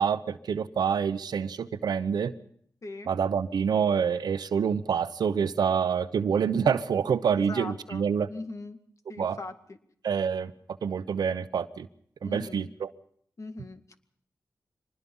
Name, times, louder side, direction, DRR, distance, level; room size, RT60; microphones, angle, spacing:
voice 1, 0.0-2.3 3.1-8.3 9.2-9.4 10.0-10.5 10.8-11.9 12.2-12.9, right 7 dB, 85° right, 13 dB, 1.0 m, -27 dB
voice 2, 7.4-8.8 9.1-9.8 12.2-12.7 13.4-13.9, left 2 dB, 50° left, 7 dB, 2.1 m, -41 dB
24.5 x 20.5 x 5.6 m, 0.65 s
cardioid pair, 60°, 7 cm